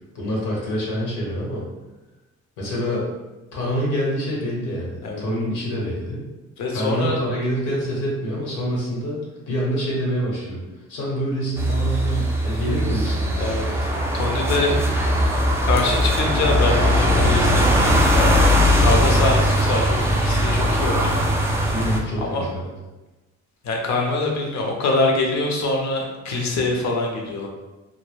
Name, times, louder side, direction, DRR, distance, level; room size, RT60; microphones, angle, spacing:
voice 1, 0.1-1.7 2.6-3.1 3.5-6.2 6.7-9.2 9.5-10.6 10.9-13.6 21.7-22.7, equal, 85° left, -4 dB, 1.0 m, -26 dB
voice 2, 6.6-7.2 13.4-13.9 14.1-14.8 15.6-21.7 22.2-22.5 23.6-27.5, left 2 dB, 65° left, 0 dB, 0.6 m, -24 dB
sound 1, 11.6-22.0, equal, 10° right, 0.3 m, -19 dB
2.1 x 2.1 x 3.1 m, 1.1 s
cardioid pair, 90°, 30 cm